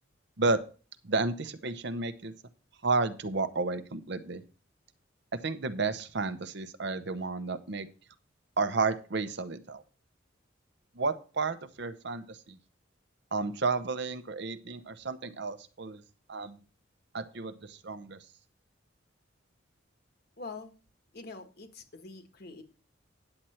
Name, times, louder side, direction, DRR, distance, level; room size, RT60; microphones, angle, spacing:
voice 1, 1.0-2.3 2.8-4.4 5.4-7.9 8.6-9.8 10.9-12.6 13.3-16.0 16.3-16.6 17.1-18.2, right 3 dB, 60° right, 11 dB, 0.8 m, -32 dB
voice 2, 20.4-20.7 21.1-22.6, left 3 dB, 55° left, 7 dB, 1.5 m, -44 dB
9.9 x 7.8 x 4.4 m, 0.36 s
head